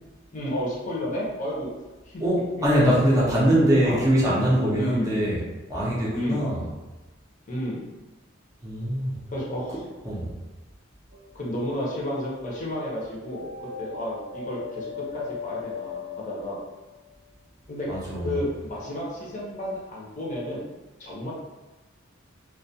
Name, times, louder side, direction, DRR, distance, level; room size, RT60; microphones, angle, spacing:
voice 1, 0.3-1.7 2.0-2.2 2.6-2.7 3.6-4.0 4.7-5.2 6.1-6.7 7.5-7.9 9.3-9.8 11.3-16.6 17.7-17.9 18.2-20.7 21.0-21.3, left 1 dB, 40° left, -5 dB, 0.6 m, -32 dB
voice 2, 2.2-5.4 5.7-6.6 8.6-9.2 10.0-10.3 17.9-18.3, equal, 15° right, -7 dB, 0.5 m, -22 dB
sound 1, 11.1-11.9 13.3-17.1, left 6 dB, 90° right, 0.4 m, -38 dB
2.2 x 2.1 x 2.6 m, 1.1 s
head